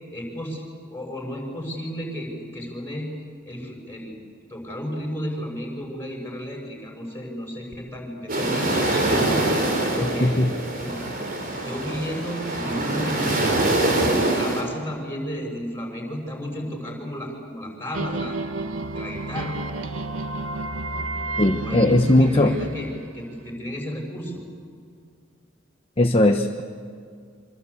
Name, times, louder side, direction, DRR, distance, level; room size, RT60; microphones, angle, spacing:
voice 1, 0.1-0.6 0.9-3.1 3.4-4.2 4.5-9.5 9.9-10.4 10.8-11.0 11.5-13.5 13.9-18.6 18.9-19.6 21.6-22.9 23.1-24.4, equal, 10° left, 0 dB, 6.5 m, -33 dB
sound 1, 8.3-14.6, right 1 dB, 45° right, 4.7 m, -24 dB
sound 2, 17.9-23.5, right 2 dB, 75° right, 1.3 m, -31 dB
voice 2, 21.4-22.5 26.0-26.6, left 1 dB, 30° left, 4 dB, 1.1 m, -18 dB
25.5 x 25.5 x 8.4 m, 2.3 s
head